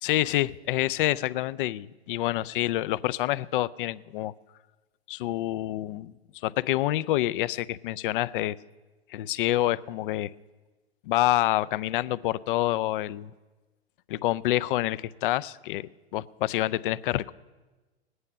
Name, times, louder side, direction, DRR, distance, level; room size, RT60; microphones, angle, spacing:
voice 1, 0.0-4.3 5.1-6.1 6.4-8.6 9.1-10.3 11.1-13.3 14.1-17.3, left 15 dB, 55° left, 17 dB, 0.5 m, -27 dB
19.0 x 9.7 x 5.5 m, 1.2 s
hypercardioid pair, 120°, 32 cm